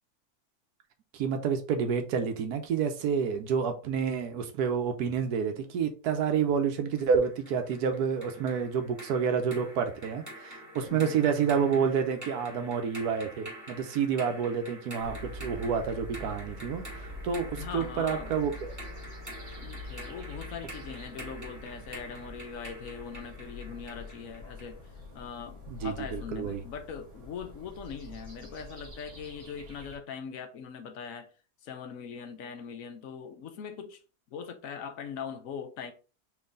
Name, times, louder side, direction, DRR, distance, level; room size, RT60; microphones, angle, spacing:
voice 1, 1.1-18.7 25.7-26.6, right 6 dB, 85° right, 1.3 m, -29 dB
sound 1, 7.0-24.8, equal, 10° right, 1.8 m, -47 dB
voice 2, 10.9-11.2 17.6-18.4 19.6-24.8 25.1-31.3 31.6-34.0 34.3-35.9, left 7 dB, 65° left, 1.1 m, -41 dB
sound 2, 15.0-30.0, left 1 dB, 50° right, 2.0 m, -45 dB
4.5 x 3.1 x 3.8 m
omnidirectional pair, 1.6 m